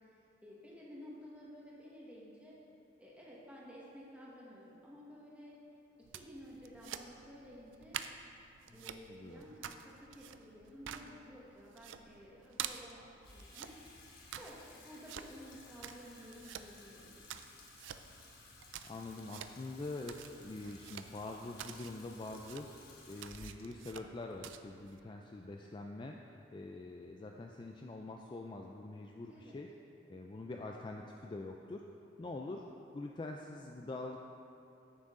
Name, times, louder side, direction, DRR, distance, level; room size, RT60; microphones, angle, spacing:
voice 1, 0.4-2.6 3.0-5.6 6.1-8.0 8.7-13.7 14.3-17.1 29.3-29.6, equal, 5° right, -6 dB, 1.4 m, -53 dB
Throwing Cards, 6.0-25.0, right 9 dB, 85° right, 0.4 m, -49 dB
voice 2, 8.7-9.4 18.8-22.8 23.1-29.7 30.1-34.2, left 2 dB, 25° left, 1 dB, 0.3 m, -45 dB
Water tap faucet / Sink (filling or washing), 13.2-25.6, left 3 dB, 55° left, 1.2 m, -58 dB
9.5 x 6.4 x 3.7 m, 2.8 s
head